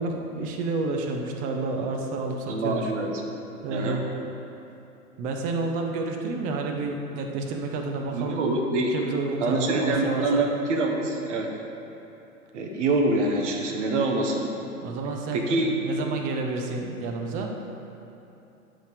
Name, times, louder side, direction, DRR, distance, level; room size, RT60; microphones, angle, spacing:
voice 1, 0.0-2.9 3.6-4.1 5.2-10.4 14.8-17.5, right 3 dB, 20° right, 2 dB, 0.5 m, -30 dB
voice 2, 2.5-3.1 3.7-4.0 8.1-8.9 9.4-11.5 12.5-14.5 15.3-15.7, right 2 dB, 50° right, 1 dB, 1.3 m, -25 dB
7.7 x 5.4 x 4.9 m, 3.0 s
figure-of-eight pair, 110°, 45 cm